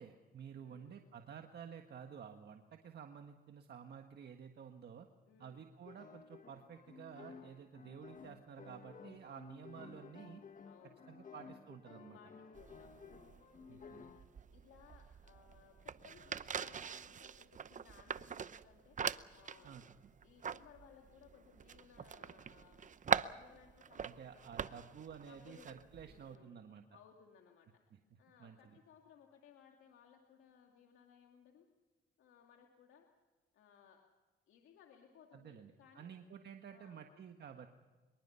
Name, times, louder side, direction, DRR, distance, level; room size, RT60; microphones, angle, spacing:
voice 1, 0.0-5.1 5.4-10.4 11.1-12.2 13.7-14.0 19.6-20.1 24.0-26.8 27.9-28.8 35.3-37.7, right 7 dB, 55° right, 5 dB, 1.6 m, -52 dB
voice 2, 0.5-1.1 5.3-5.6 10.6-11.3 12.1-14.1 14.5-19.0 19.3-19.7 20.2-23.0 23.3-24.8 25.3-27.8 28.2-31.7 32.2-33.1 33.5-34.0 34.5-36.1 36.7-37.2, left 7 dB, 80° left, 2 dB, 2.4 m, -63 dB
sound 1, 5.8-14.3, left 5 dB, 40° left, 2.1 m, -55 dB
sound 2, 12.5-26.4, right 7 dB, 40° right, 0.8 m, -43 dB
25.0 x 23.0 x 5.8 m, 1.3 s
cardioid pair, 90°, 20 cm